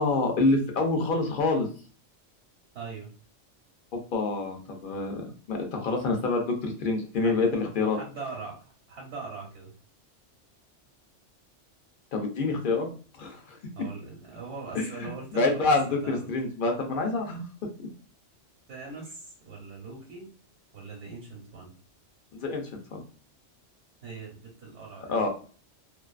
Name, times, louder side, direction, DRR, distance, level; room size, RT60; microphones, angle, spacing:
voice 1, 0.0-1.7 3.9-8.0 12.1-12.9 13.2-13.6 14.7-17.4 17.8-17.9 22.4-22.6 22.9-23.0 25.1-25.3, left 3 dB, 55° left, 3 dB, 0.7 m, -27 dB
voice 2, 2.7-3.1 7.1-7.4 7.9-9.7 13.7-16.3 18.7-20.3 20.7-21.7 24.0-25.3, right 4 dB, 75° right, -3 dB, 1.1 m, -41 dB
2.5 x 2.4 x 2.3 m, 0.39 s
omnidirectional pair, 1.3 m